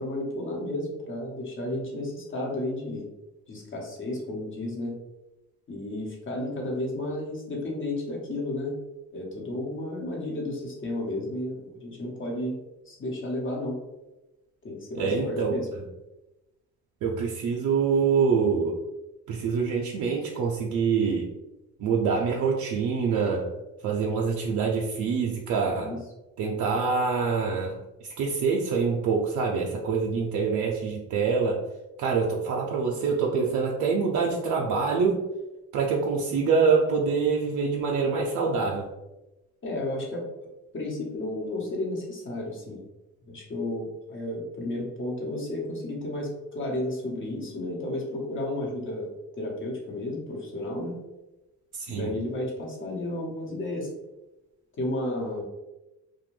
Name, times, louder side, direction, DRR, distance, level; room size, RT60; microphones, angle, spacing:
voice 1, 0.0-3.1 3.5-5.0 5.7-8.8 9.1-12.6 12.9-13.8 14.6-15.7 25.7-26.0 29.5-29.7 39.6-40.2 40.7-42.8 43.3-49.1 49.4-50.9 51.9-53.9 54.7-55.4, left 1 dB, 40° left, -1 dB, 0.9 m, -32 dB
voice 2, 15.0-15.5 17.0-18.8 19.3-21.3 21.8-23.5 23.8-25.9 26.4-31.6 32.0-35.2 35.7-38.9 51.7-52.1, right 5 dB, 75° right, -1 dB, 0.5 m, -25 dB
2.5 x 2.2 x 3.1 m, 1.0 s
cardioid pair, 90°, 30 cm